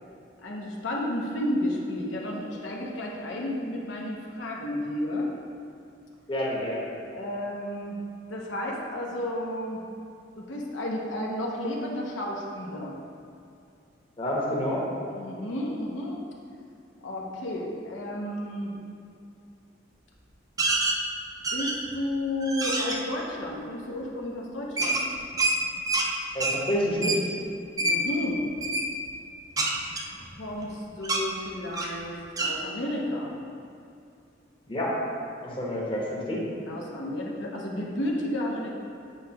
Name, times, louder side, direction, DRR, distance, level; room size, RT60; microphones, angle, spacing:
voice 1, 0.4-5.4 7.1-8.0 8.3-9.8 10.4-12.9 15.1-16.2 17.0-18.7 21.5-25.0 27.8-28.5 30.4-33.3 36.7-38.7, left 1 dB, 85° left, -2 dB, 0.8 m, -32 dB
voice 2, 6.3-6.9 14.2-14.8 26.3-27.2 34.7-34.9 35.4-36.4, equal, 30° left, -4 dB, 1.0 m, -28 dB
sound 1, 20.6-21.0 21.4-21.9 22.4-23.0 24.8-26.1 26.4-26.6 27.0-27.2 27.8-28.0 28.6-28.9 29.6-30.7 31.0-31.2 31.7-32.0 32.4-32.5, right 2 dB, 20° right, 0.5 m, -26 dB
8.2 x 4.6 x 2.9 m, 2.5 s
head